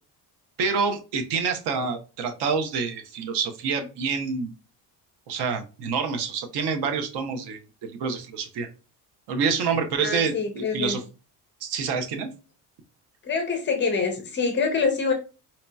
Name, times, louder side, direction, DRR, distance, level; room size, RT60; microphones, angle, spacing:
voice 1, 0.6-4.5 5.3-8.7 9.3-11.0 11.6-12.3, right 5 dB, 65° right, 6 dB, 0.8 m, -27 dB
voice 2, 10.0-11.0 13.2-15.1, left 4 dB, 30° left, 4 dB, 0.4 m, -25 dB
4.2 x 2.7 x 2.2 m, 0.32 s
cardioid pair, 180°, 43 cm